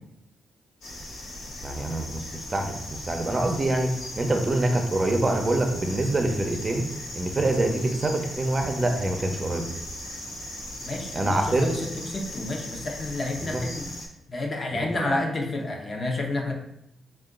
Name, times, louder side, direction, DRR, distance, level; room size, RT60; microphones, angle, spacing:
sound 1, 0.8-14.1, left 1 dB, 80° left, 0.8 m, -38 dB
voice 1, 1.6-6.9 7.1-9.7 11.1-11.7 13.4-13.6 14.7-15.1, right 2 dB, 35° right, 4 dB, 0.7 m, -25 dB
voice 2, 10.8-13.9 14.3-16.5, left 2 dB, 45° left, 1 dB, 0.9 m, -30 dB
3.6 x 2.5 x 3.8 m, 0.80 s
supercardioid pair, 55°, 0 cm